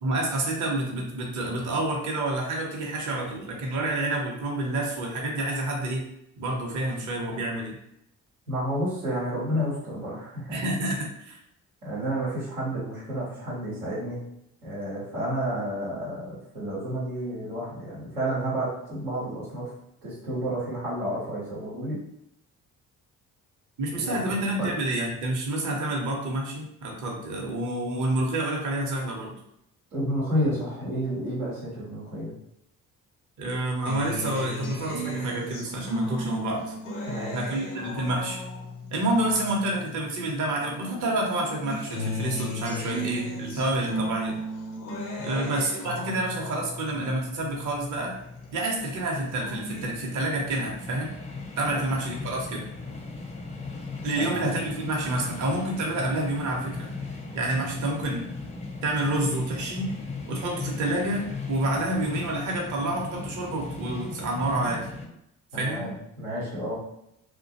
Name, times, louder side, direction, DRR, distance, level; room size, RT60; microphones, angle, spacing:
voice 1, 0.0-6.0 6.4-7.8 10.5-11.4 23.8-29.4 33.4-36.7 37.3-38.4 38.9-44.4 45.2-48.1 48.5-51.1 51.6-52.7 54.0-56.9 57.3-58.2 58.8-59.9 60.3-64.9 65.5-65.9, right 1 dB, 45° right, 0 dB, 0.7 m, -28 dB
voice 2, 8.5-10.6 11.8-14.2 14.6-19.7 20.0-22.0 23.9-24.8 29.9-32.3 37.1-37.4 45.2-45.4 51.8-52.0 54.2-54.4 65.5-66.8, equal, 85° right, -7 dB, 0.9 m, -31 dB
Acoustic guitar, 33.9-40.5 40.9-48.5 48.9-49.8, equal, 80° left, 0.7 m, -36 dB
sound 1, 47.3-65.1, left 3 dB, 15° left, 0.4 m, -38 dB
2.4 x 2.2 x 2.7 m, 0.78 s
figure-of-eight pair, 40°, 43 cm